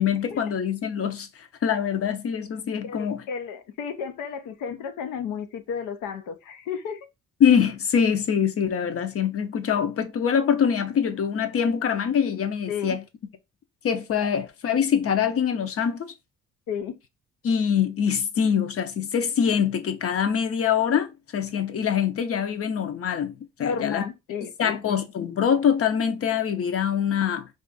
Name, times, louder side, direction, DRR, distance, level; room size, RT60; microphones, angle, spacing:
voice 1, 0.0-3.2 7.4-13.0 13.8-16.1 17.4-24.0 24.6-27.5, left 8 dB, 50° left, 0.6 m, -24 dB
voice 2, 2.8-7.1 12.7-13.0 16.7-17.0 23.6-25.0, left 7 dB, 90° left, 0.6 m, -33 dB
2.5 x 2.4 x 3.7 m
cardioid pair, 90°, 30 cm